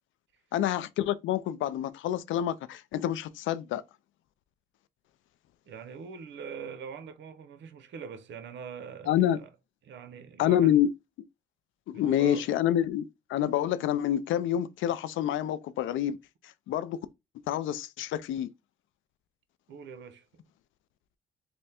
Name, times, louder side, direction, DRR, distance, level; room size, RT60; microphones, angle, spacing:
voice 1, 0.5-3.8 9.1-9.4 10.4-10.9 11.9-16.2 16.7-17.0 17.5-18.5, left 11 dB, 75° left, 0.4 m, -27 dB
voice 2, 5.7-9.5 9.8-10.8 11.9-12.5 19.7-20.2, right 6 dB, 70° right, 0.7 m, -43 dB
3.3 x 2.1 x 4.2 m
cardioid pair, 90°, 20 cm